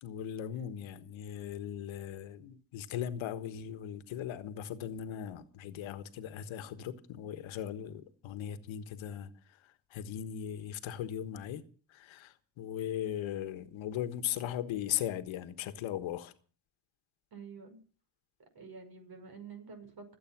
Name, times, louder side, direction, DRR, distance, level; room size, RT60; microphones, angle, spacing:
voice 1, 0.0-11.6 11.9-16.3, left 10 dB, 85° left, 1.4 m, -38 dB
voice 2, 17.3-17.8 18.5-20.2, right 5 dB, 50° right, 5.8 m, -48 dB
25.0 x 8.5 x 6.0 m
cardioid pair, 85°, 46 cm